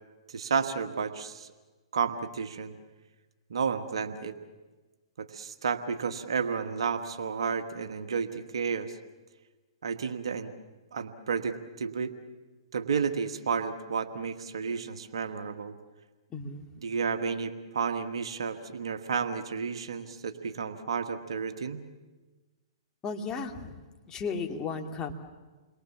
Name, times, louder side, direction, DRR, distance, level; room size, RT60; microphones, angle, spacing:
voice 1, 0.3-1.5 1.9-2.7 3.5-4.3 5.2-9.0 9.8-10.5 10.9-12.1 12.7-15.7 16.8-21.8, right 6 dB, 75° right, 8 dB, 1.5 m, -31 dB
voice 2, 16.3-16.7 23.0-23.7 24.1-25.1, left 4 dB, 20° left, 4 dB, 2.3 m, -34 dB
29.5 x 22.5 x 7.2 m, 1.3 s
hypercardioid pair, 125°, 3 cm